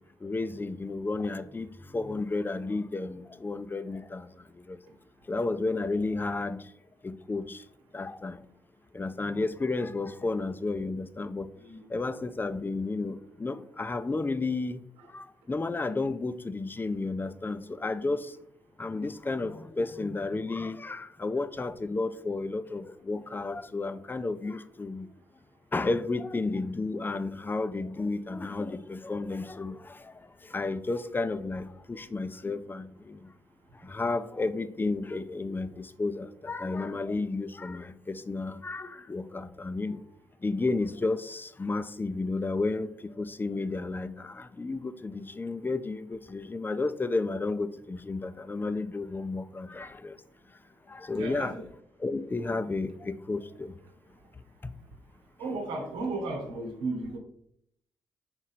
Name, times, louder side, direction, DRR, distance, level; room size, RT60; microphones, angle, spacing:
voice 1, 0.2-1.7 1.9-4.3 4.7-4.8 5.3-6.6 7.0-7.6 7.9-8.4 8.9-11.5 11.9-14.8 15.1-18.3 18.8-25.1 25.7-30.0 30.5-33.2 33.8-40.0 40.4-50.2 50.9-51.5 52.0-53.7, left 3 dB, 25° left, 0.6 m, -32 dB
voice 2, 51.2-51.6 55.4-57.2, right 2 dB, 75° right, 1.1 m, -34 dB
6.1 x 3.9 x 4.3 m
hypercardioid pair, 40°, 9 cm